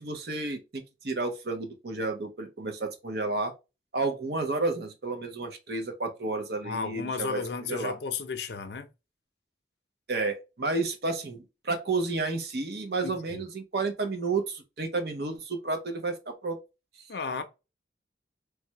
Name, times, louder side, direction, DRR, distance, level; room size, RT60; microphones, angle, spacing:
voice 1, 0.0-3.5 3.9-7.9 10.1-16.6, right 3 dB, 65° right, 0.7 m, -31 dB
voice 2, 6.6-8.9 13.0-13.4 17.1-17.4, left 5 dB, 70° left, 0.5 m, -34 dB
3.3 x 2.2 x 2.8 m
head